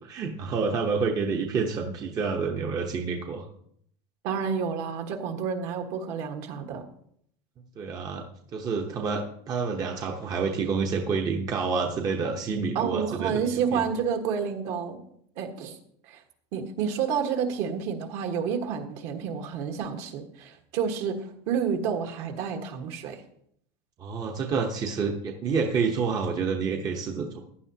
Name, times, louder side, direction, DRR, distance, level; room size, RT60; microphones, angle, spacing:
voice 1, 0.0-3.4 7.8-8.2 8.5-13.8 24.0-27.4, right 5 dB, 25° right, 2 dB, 0.9 m, -28 dB
voice 2, 4.2-6.8 12.7-15.0 15.4-15.7 16.0-16.2 16.5-23.2, right 7 dB, 50° right, 4 dB, 1.4 m, -29 dB
15.5 x 10.5 x 2.8 m, 0.69 s
supercardioid pair, 160°, 14 cm